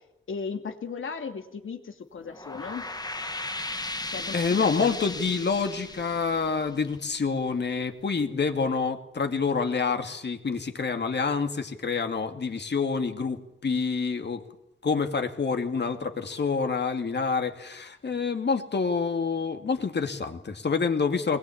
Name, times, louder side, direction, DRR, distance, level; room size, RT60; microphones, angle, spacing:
voice 1, 0.3-2.9 4.1-5.0, left 5 dB, 80° left, 6 dB, 2.6 m, -36 dB
sound 1, 2.2-7.4, left 2 dB, 20° left, 1.6 m, -36 dB
voice 2, 4.3-14.4 14.8-21.4, left 5 dB, 55° left, 6 dB, 2.5 m, -27 dB
21.5 x 21.0 x 8.7 m, 0.84 s
cardioid pair, 70°, 21 cm